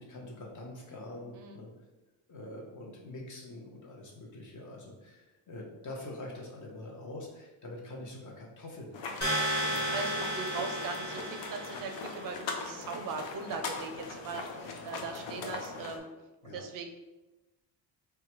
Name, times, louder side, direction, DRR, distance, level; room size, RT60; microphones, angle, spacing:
voice 1, 0.0-1.7 2.3-9.9 15.3-15.5 16.4-16.6, left 1 dB, 45° left, -2 dB, 0.8 m, -45 dB
sound 1, 8.9-16.0, left 4 dB, 75° left, 0.7 m, -40 dB
sound 2, 9.2-12.1, right 1 dB, 20° left, 1.1 m, -33 dB
voice 2, 9.7-16.1 16.4-16.9, right 4 dB, 50° right, 5 dB, 0.5 m, -40 dB
4.4 x 2.3 x 2.9 m, 1.1 s
cardioid pair, 150°, 44 cm